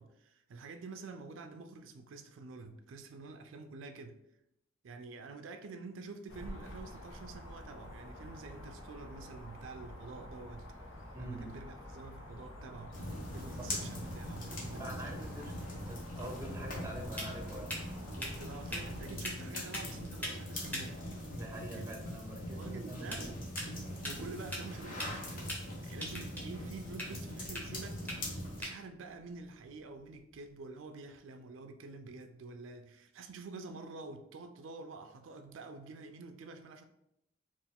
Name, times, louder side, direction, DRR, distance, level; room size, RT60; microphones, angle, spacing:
voice 1, 0.0-4.2 4.8-10.7 11.2-13.0 13.3-15.3 18.2-21.1 21.7-21.9 22.6-23.2 24.0-36.8, right 3 dB, 80° right, 0.4 m, -48 dB
sound 1, 6.3-19.0, left 1 dB, 85° left, 1.0 m, -48 dB
voice 2, 11.1-11.5 13.6-13.7 14.8-15.5 15.9-17.7 21.3-23.3, right 1 dB, 15° right, 0.6 m, -45 dB
sound 2, 12.9-28.6, left 1 dB, 45° left, 1.0 m, -42 dB
sound 3, 16.7-30.6, equal, 10° left, 0.9 m, -46 dB
4.5 x 2.5 x 3.5 m
head